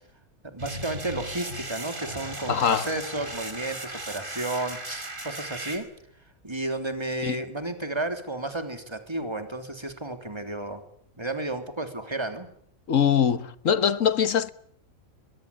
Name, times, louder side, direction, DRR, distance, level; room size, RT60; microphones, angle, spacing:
voice 1, 0.4-5.9 6.4-10.8 11.2-12.5, right 2 dB, 20° right, 3.4 m, -32 dB
sound 1, 0.6-5.8, right 1 dB, 35° right, 5.1 m, -37 dB
voice 2, 2.5-2.9 7.2-7.4 12.9-14.5, left 8 dB, 70° left, 1.6 m, -23 dB
22.5 x 21.0 x 9.9 m
omnidirectional pair, 1.4 m